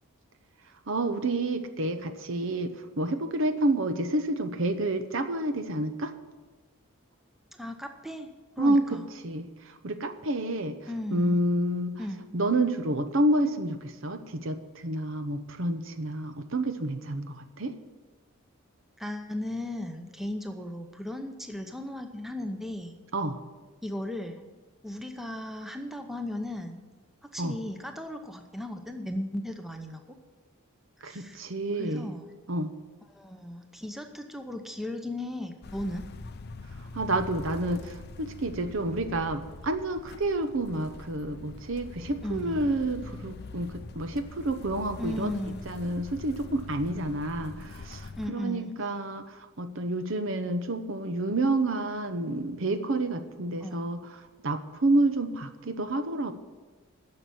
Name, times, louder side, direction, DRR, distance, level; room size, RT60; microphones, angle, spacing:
voice 1, 0.9-6.1 8.6-10.8 11.1-12.0 12.3-17.7 23.1-23.4 27.4-27.5 31.0-32.1 32.5-32.7 36.9-45.3 45.7-54.0 54.4-56.3, right 1 dB, 60° right, 9 dB, 0.8 m, -29 dB
voice 2, 7.5-9.1 10.9-11.4 12.0-12.3 19.0-23.0 23.8-24.4 24.8-26.8 27.2-30.2 31.0-31.4 31.8-32.3 33.1-36.0 42.2-42.7 45.0-45.6 48.2-48.7 53.6-53.9, left 1 dB, ahead, 5 dB, 0.8 m, -36 dB
sound 1, 35.6-48.3, left 3 dB, 45° left, 0.5 m, -43 dB
10.5 x 7.0 x 9.1 m, 1.3 s
head